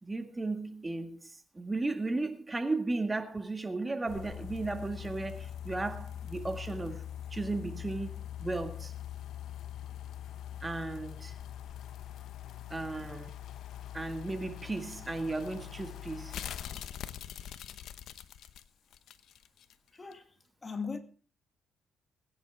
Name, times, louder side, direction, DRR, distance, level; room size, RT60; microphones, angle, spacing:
voice 1, 0.0-7.1 7.3-8.9 10.6-11.3 12.7-13.3 13.9-16.4, right 2 dB, 20° right, 1.8 m, -35 dB
sound 1, 4.1-19.7 20.1-20.2, left 10 dB, 75° left, 0.9 m, -43 dB
voice 2, 19.9-20.3 20.6-21.0, left 5 dB, 30° left, 2.0 m, -38 dB
22.0 x 10.0 x 3.5 m
cardioid pair, 90°, 0 cm